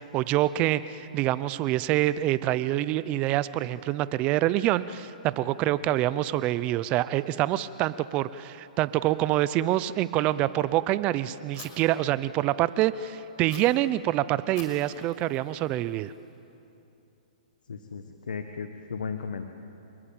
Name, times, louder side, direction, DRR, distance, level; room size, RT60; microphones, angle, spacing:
voice 1, 0.0-16.1, right 14 dB, 30° right, 16 dB, 0.7 m, -26 dB
Fire, 11.5-11.7 13.5-13.6 14.6-16.5, left 6 dB, 35° left, 5.3 m, -49 dB
voice 2, 17.7-19.4, left 5 dB, 85° left, 6 dB, 1.6 m, -35 dB
27.5 x 20.0 x 8.9 m, 2.8 s
hypercardioid pair, 145°, 4 cm